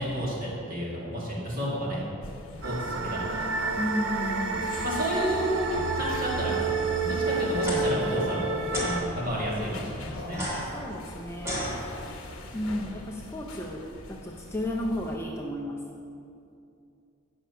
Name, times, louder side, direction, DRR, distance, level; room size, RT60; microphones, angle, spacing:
voice 1, 0.0-2.0 2.6-3.5 4.8-5.7 5.9-6.6 6.9-10.4 11.9-12.1, equal, 40° right, -6 dB, 2.2 m, -31 dB
sound 1, 2.2-15.2, left 1 dB, 70° left, 1.1 m, -42 dB
sound 2, 2.6-9.0, right 3 dB, 60° right, 0.6 m, -29 dB
voice 2, 3.8-4.8 10.6-11.6 12.5-15.8, left 1 dB, 10° left, -2 dB, 0.5 m, -33 dB
sound 3, 7.5-7.8 8.7-8.9 10.3-12.3, equal, 15° right, 1.8 m, -34 dB
8.5 x 6.1 x 5.6 m, 2.5 s
head